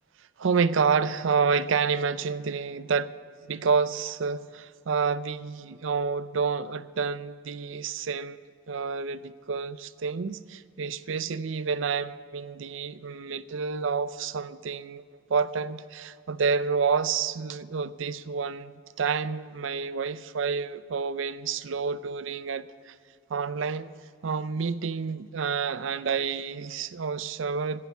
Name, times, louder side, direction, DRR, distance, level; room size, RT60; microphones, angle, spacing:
voice 1, 0.4-3.1 3.4-15.0 15.3-23.0 23.3-23.9 24.2-27.9, right 5 dB, 75° right, 16 dB, 0.5 m, -29 dB
10.5 x 9.9 x 8.1 m, 2.3 s
head